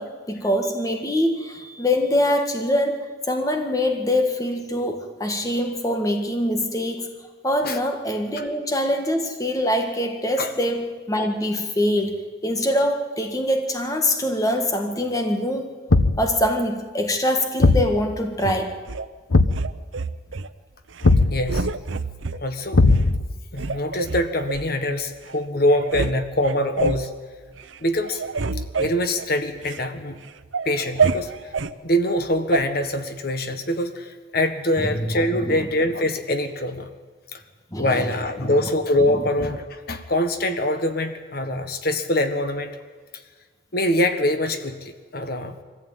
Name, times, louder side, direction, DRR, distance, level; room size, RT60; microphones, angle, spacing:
voice 1, 0.0-7.1 7.4-15.7 16.2-18.8 34.8-35.7 37.7-38.1 38.4-38.7 39.1-39.2, left 1 dB, 20° left, 5 dB, 1.8 m, -24 dB
Thump thud, 15.9-16.3 17.6-17.9 19.3-19.7 21.0-21.4 22.7-23.3, left 2 dB, 80° left, 1.0 m, -17 dB
sound 1, 18.4-19.1 19.5-20.5 20.9-21.1 21.5-22.4 22.9-23.0 23.5-24.7 25.3-25.4 25.7-26.1 26.4-27.1 27.5-27.8 28.0-29.8 30.2-31.7 32.5-32.6, right 4 dB, 80° right, 0.8 m, -27 dB
voice 2, 21.3-21.7 22.4-22.8 23.5-27.1 27.8-28.2 28.7-30.2 30.6-31.3 31.8-36.9 37.3-37.4 37.8-42.7 43.7-45.6, left 1 dB, 50° left, 8 dB, 1.5 m, -24 dB
23.0 x 15.0 x 9.2 m, 1.5 s
head